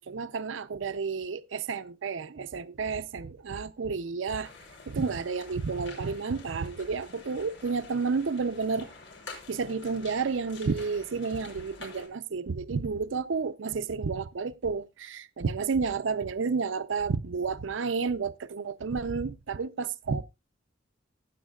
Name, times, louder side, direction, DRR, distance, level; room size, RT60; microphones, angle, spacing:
voice 1, 0.1-4.5 4.9-8.9 9.5-20.2, right 5 dB, 80° right, 0.5 m, -31 dB
sound 1, 4.4-12.1, left 4 dB, 65° left, 5.3 m, -48 dB
16.0 x 8.3 x 2.3 m
head